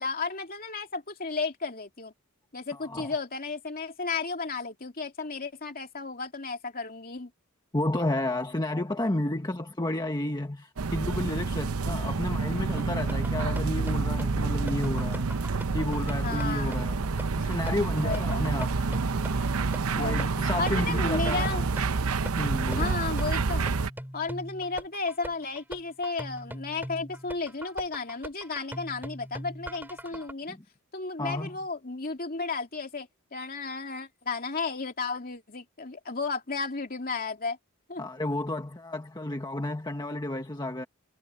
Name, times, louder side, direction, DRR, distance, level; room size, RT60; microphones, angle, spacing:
voice 1, 0.0-2.1 2.5-7.3 16.2-16.8 18.0-18.5 20.0-20.3 20.6-21.6 22.8-23.7 24.1-30.6 30.9-37.6 37.9-38.1, left 4 dB, 45° left, 2.7 m, -33 dB
voice 2, 2.7-3.1 7.7-15.3 15.7-17.0 17.4-18.8 19.9-21.5 22.4-23.0 31.2-31.6 38.0-40.9, left 1 dB, 20° left, 1.3 m, -31 dB
sound 1, 10.8-23.9, right 4 dB, 80° right, 0.7 m, -28 dB
sound 2, 12.8-30.3, equal, 10° right, 2.9 m, -41 dB
head